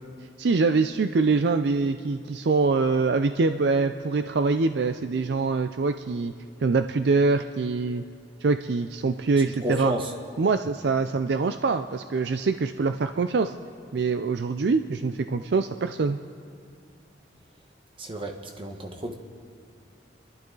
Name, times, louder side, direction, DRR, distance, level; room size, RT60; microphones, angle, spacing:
voice 1, 0.4-6.3 6.6-8.0 8.4-9.9 10.4-13.5 13.9-16.2, right 4 dB, 60° right, 8 dB, 0.4 m, -24 dB
voice 2, 9.6-10.1 18.0-19.1, right 1 dB, 30° right, 3 dB, 1.2 m, -31 dB
30.0 x 12.0 x 3.9 m, 2.5 s
head